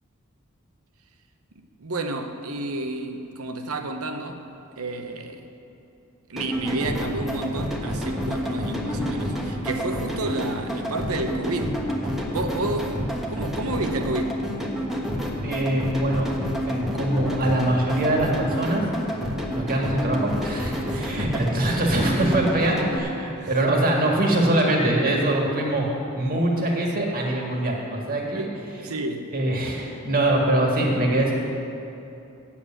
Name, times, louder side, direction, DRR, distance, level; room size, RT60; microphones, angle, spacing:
voice 1, 1.8-4.4 4.8-5.5 6.3-11.8 12.1-13.0 13.3-14.4 20.9-21.5 22.1-22.2 22.7-23.0 23.4-23.5 26.7-27.0 28.3-29.3, right 2 dB, 85° right, 6 dB, 0.9 m, -31 dB
sound 1, 6.4-23.0, equal, ahead, 1.1 m, -29 dB
voice 2, 15.4-16.3 16.7-18.8 19.5-25.9 26.1-28.5 29.3-31.3, right 1 dB, 40° right, -1 dB, 1.7 m, -23 dB
8.3 x 7.3 x 8.8 m, 2.8 s
head